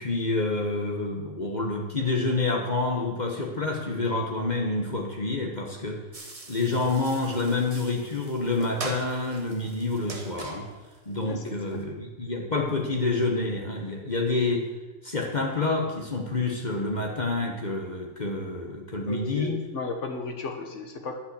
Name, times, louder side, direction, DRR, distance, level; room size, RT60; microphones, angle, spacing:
voice 1, 0.0-6.0 6.5-10.7 11.1-14.7 15.0-19.5, left 3 dB, 35° left, 1 dB, 1.3 m, -28 dB
sound 1, 6.1-11.8, right 2 dB, 30° right, 1.4 m, -42 dB
voice 2, 19.1-21.2, left 3 dB, 70° left, 5 dB, 1.6 m, -34 dB
10.0 x 5.7 x 8.1 m, 1.2 s
omnidirectional pair, 1.3 m